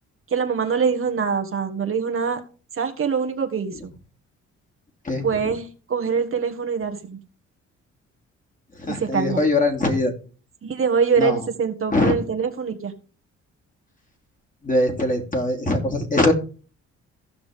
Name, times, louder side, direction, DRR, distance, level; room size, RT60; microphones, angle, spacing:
voice 1, 0.3-2.4 2.7-3.9 5.2-7.2 9.0-9.4 10.6-12.9, right 6 dB, 45° right, 5 dB, 1.4 m, -24 dB
voice 2, 5.0-5.5 8.7-10.1 11.2-11.4 11.9-12.1 14.6-16.3, left 2 dB, 25° left, 3 dB, 2.7 m, -22 dB
15.5 x 6.0 x 3.6 m, 0.37 s
cardioid pair, 90°, 30 cm